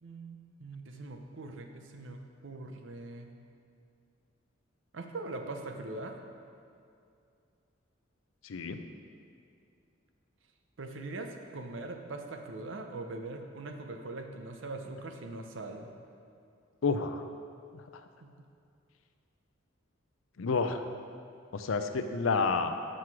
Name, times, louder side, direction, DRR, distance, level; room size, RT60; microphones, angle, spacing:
voice 1, 0.0-3.3 4.9-6.2 10.8-15.9 18.2-18.3, right 2 dB, 70° right, 4 dB, 0.7 m, -42 dB
voice 2, 8.4-8.8 16.8-17.2 20.4-20.8 21.5-22.7, left 4 dB, 85° left, 8 dB, 0.5 m, -29 dB
7.6 x 6.2 x 4.7 m, 2.5 s
head